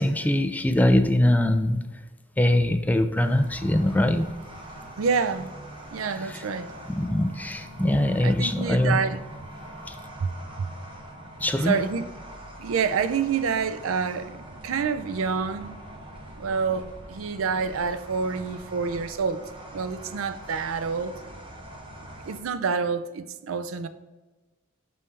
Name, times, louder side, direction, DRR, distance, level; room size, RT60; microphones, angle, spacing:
voice 1, 0.0-1.8 2.4-4.3 6.2-6.4 6.9-9.0 9.9-10.0 11.4-11.7, left 1 dB, 10° left, 0.3 m, -22 dB
sound 1, 3.1-22.4, right 1 dB, 25° right, 1.1 m, -43 dB
voice 2, 5.0-5.5 5.9-6.7 7.8-8.0 8.2-9.2 10.2-10.3 10.6-10.7 11.6-12.0 12.6-15.8 16.4-19.4 19.7-21.1 22.2-23.9, right 5 dB, 90° right, 0.4 m, -27 dB
5.5 x 5.4 x 3.2 m
head